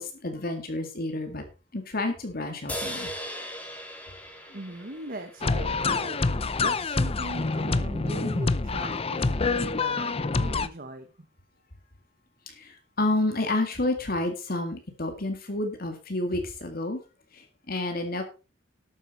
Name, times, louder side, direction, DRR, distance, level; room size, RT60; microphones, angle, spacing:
voice 1, 0.0-1.4 1.7-3.1 12.5-17.0 17.3-18.2, left 2 dB, 50° left, 5 dB, 2.0 m, -30 dB
sound 1, 2.7-6.2, equal, 10° left, 2.6 m, -38 dB
voice 2, 4.5-11.3, right 1 dB, 50° right, 6 dB, 1.3 m, -39 dB
sound 2, 5.4-10.7, left 3 dB, 30° left, 0.6 m, -26 dB
12.0 x 9.0 x 4.1 m, 0.32 s
head